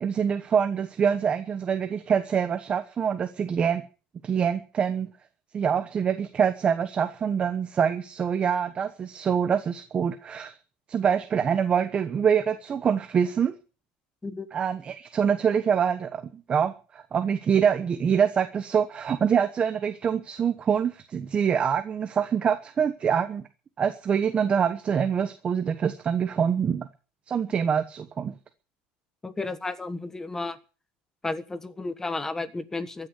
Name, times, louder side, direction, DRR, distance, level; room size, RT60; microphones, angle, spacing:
voice 1, 0.0-3.8 4.2-5.1 5.5-10.6 10.9-13.6 14.5-23.4 23.8-26.9 27.3-28.3, right 7 dB, 25° right, 9 dB, 1.1 m, -25 dB
voice 2, 29.2-30.6 31.2-33.1, left 3 dB, 10° left, 13 dB, 1.4 m, -32 dB
15.0 x 9.8 x 8.2 m, 0.37 s
cardioid pair, 150°, 4 cm